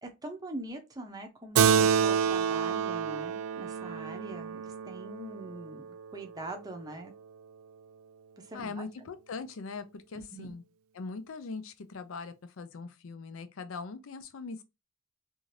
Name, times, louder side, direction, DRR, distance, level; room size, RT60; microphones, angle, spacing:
voice 1, 0.0-7.1 8.4-8.8 10.1-10.5, right 2 dB, 20° right, 0.6 m, -43 dB
Keyboard (musical), 1.6-6.4, right 7 dB, 80° right, 0.3 m, -28 dB
voice 2, 8.5-10.6 10.9-14.6, left 4 dB, 65° left, 0.5 m, -41 dB
2.6 x 2.4 x 3.1 m
head